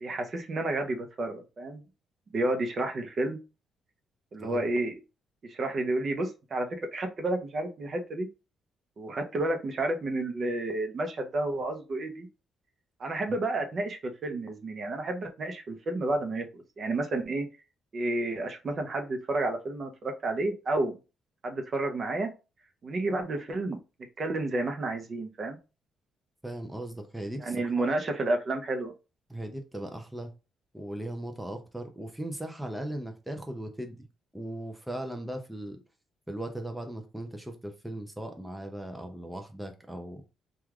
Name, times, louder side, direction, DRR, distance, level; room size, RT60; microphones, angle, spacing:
voice 1, 0.0-1.8 2.3-3.4 4.3-4.9 5.4-8.3 9.0-12.3 13.0-17.5 17.9-21.0 21.4-22.3 22.8-23.8 24.2-25.6 27.4-28.9, right 2 dB, 45° right, 0.6 m, -31 dB
voice 2, 26.4-27.9 29.3-30.3 30.7-34.1 34.3-35.8 36.3-40.2, right 1 dB, 5° right, 0.5 m, -38 dB
3.1 x 2.3 x 2.3 m
cardioid pair, 90°, 0 cm